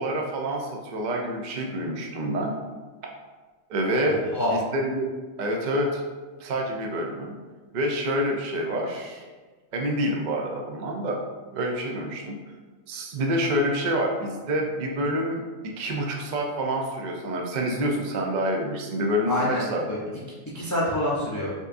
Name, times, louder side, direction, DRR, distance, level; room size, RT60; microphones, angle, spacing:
voice 1, 0.0-2.5 3.7-4.2 4.5-5.1 5.4-6.0 6.4-7.3 7.7-9.2 9.7-11.2 11.5-12.4 12.9-19.8, equal, 55° right, 0 dB, 0.5 m, -27 dB
voice 2, 4.0-4.5 19.3-20.0 20.5-21.5, left 1 dB, 25° left, -7 dB, 0.4 m, -27 dB
5.3 x 2.5 x 2.5 m, 1.3 s
omnidirectional pair, 1.3 m